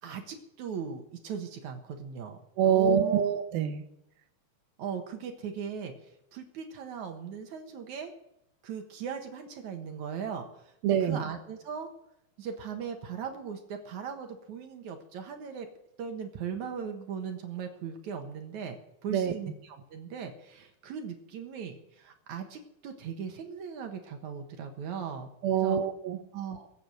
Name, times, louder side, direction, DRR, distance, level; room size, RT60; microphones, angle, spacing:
voice 1, 0.0-3.2 4.8-8.1 8.6-10.6 11.0-11.9 12.4-15.7 16.0-18.8 19.0-25.8 26.3-26.7, right 7 dB, 60° right, 5 dB, 2.4 m, -38 dB
voice 2, 2.6-3.8 10.8-11.2 19.1-19.3 25.4-26.2, right 8 dB, 75° right, 9 dB, 2.7 m, -25 dB
19.5 x 8.3 x 7.7 m, 0.81 s
omnidirectional pair, 4.4 m